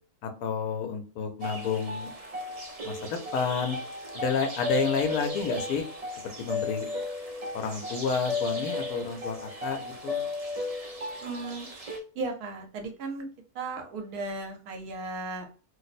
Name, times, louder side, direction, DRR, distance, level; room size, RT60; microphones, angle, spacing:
voice 1, 0.2-2.1 2.8-3.8 4.1-5.8 6.2-6.9 7.5-10.2, left 5 dB, 75° left, 5 dB, 1.1 m, -30 dB
sound 1, 1.4-12.0, left 2 dB, 45° right, 0.4 m, -35 dB
voice 2, 11.2-11.7 12.1-13.3 13.5-15.6, right 3 dB, 80° right, 4 dB, 1.2 m, -35 dB
2.9 x 2.0 x 4.0 m, 0.37 s
omnidirectional pair, 1.6 m